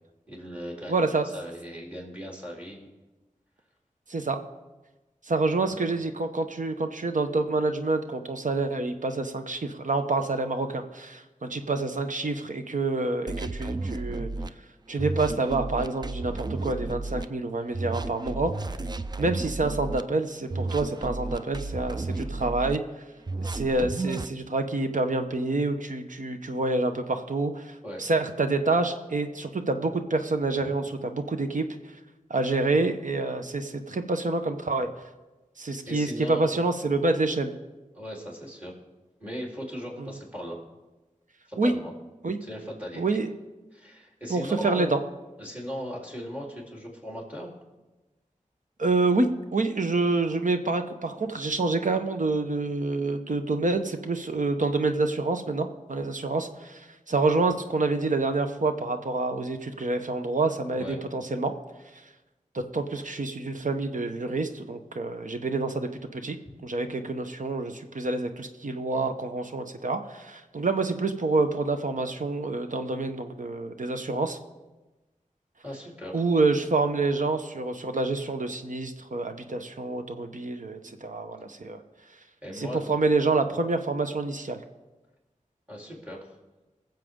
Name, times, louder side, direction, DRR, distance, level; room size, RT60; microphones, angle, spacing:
voice 1, 0.3-2.9 5.7-5.8 27.8-28.0 30.6-30.7 35.9-36.5 37.9-38.7 39.2-40.6 41.5-41.9 42.5-43.0 43.7-44.9 45.4-47.5 60.7-61.0 75.6-76.2 82.4-83.0 85.7-86.3, equal, 10° right, -2 dB, 3.8 m, -38 dB
voice 2, 0.9-1.3 4.1-4.4 5.2-14.3 14.9-18.5 19.2-22.8 23.4-31.7 32.3-34.9 35.6-37.5 40.0-40.1 41.6-41.7 42.2-42.4 42.9-43.3 44.3-45.0 48.8-61.5 62.5-66.4 66.6-74.4 76.1-81.8 82.5-84.6, right 3 dB, 75° right, 7 dB, 1.0 m, -27 dB
sound 1, 13.3-14.5 15.0-17.2 17.7-20.0 20.5-22.8 23.3-24.3, right 3 dB, 30° right, 0.4 m, -33 dB
22.5 x 7.5 x 3.8 m, 1.1 s
wide cardioid pair, 70°, 13 cm